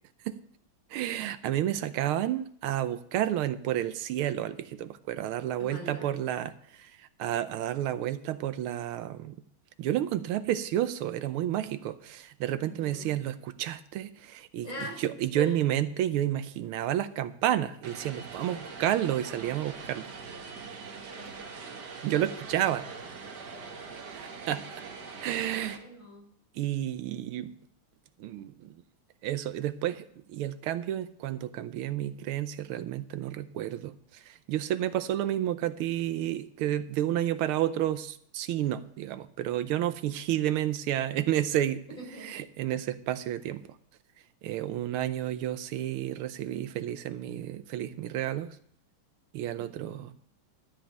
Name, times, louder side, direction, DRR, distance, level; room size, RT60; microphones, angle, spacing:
voice 1, 0.9-9.4 9.8-20.1 22.0-22.8 24.1-24.7 25.2-25.8 26.5-27.5 28.2-28.7 29.2-41.8 42.2-43.6 44.4-48.5 49.3-50.1, right 12 dB, 85° right, 12 dB, 1.5 m, -31 dB
voice 2, 5.6-6.1 12.6-13.1 14.6-15.0 15.4-15.6 21.1-21.9 23.4-23.9 25.3-26.3 42.0-42.4 49.6-50.0, right 1 dB, 40° left, -2 dB, 4.7 m, -42 dB
Vehicle, 17.8-25.8, right 5 dB, 55° right, 1.8 m, -43 dB
13.0 x 5.2 x 8.7 m, 0.64 s
omnidirectional pair, 2.3 m